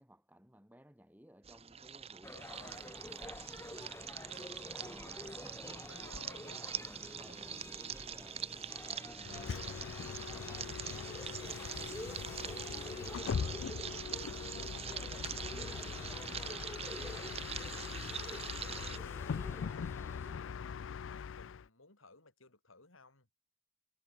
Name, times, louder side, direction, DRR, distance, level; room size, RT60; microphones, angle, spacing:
voice 1, 0.0-3.4 4.8-5.9 6.3-8.5 8.9-13.9 15.1-16.1, equal, 10° right, 6.5 m, -59 dB
sound 1, 1.4-19.0, right 8 dB, 30° right, 1.0 m, -44 dB
sound 2, 2.2-20.5, left 1 dB, 10° left, 1.7 m, -49 dB
voice 2, 2.3-2.9 4.3-7.4 13.3-13.6 17.1-17.3 17.7-23.3, left 3 dB, 85° left, 5.1 m, -60 dB
Bus, 9.2-21.7, left 6 dB, 65° left, 0.4 m, -41 dB
head